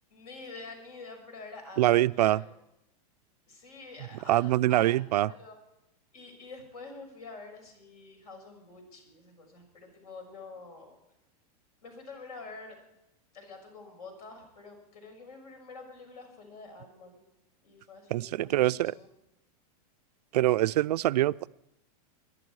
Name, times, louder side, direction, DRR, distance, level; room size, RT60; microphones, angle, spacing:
voice 1, 0.1-2.6 3.5-5.6 6.1-11.0 11.8-12.8 13.3-17.2 17.6-19.1, left 3 dB, 75° left, 6.3 m, -47 dB
voice 2, 1.8-2.4 4.3-5.3 18.1-18.9 20.3-21.5, right 15 dB, 90° right, 0.4 m, -24 dB
21.5 x 11.5 x 4.7 m
supercardioid pair, 150°, 20 cm